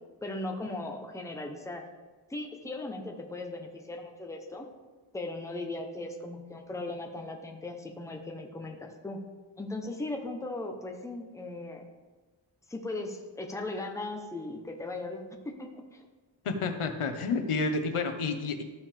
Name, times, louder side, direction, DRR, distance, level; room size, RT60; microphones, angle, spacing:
voice 1, 0.2-1.8 2.3-4.7 5.1-9.2 9.6-11.8 12.7-16.1, left 2 dB, 5° left, 3 dB, 0.8 m, -38 dB
voice 2, 16.4-18.6, left 4 dB, 85° left, 6 dB, 1.0 m, -30 dB
13.0 x 5.8 x 3.4 m, 1.3 s
wide cardioid pair, 140°, 49 cm